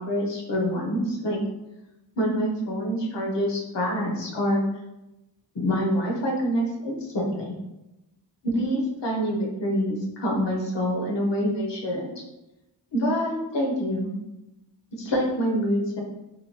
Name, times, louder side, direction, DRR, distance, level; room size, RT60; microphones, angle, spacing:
voice 1, 0.0-1.4 2.2-4.6 5.5-7.5 8.4-12.1 12.9-14.1 15.0-16.0, equal, 75° left, -1 dB, 0.8 m, -26 dB
2.9 x 2.2 x 2.9 m, 0.96 s
wide cardioid pair, 60°, 43 cm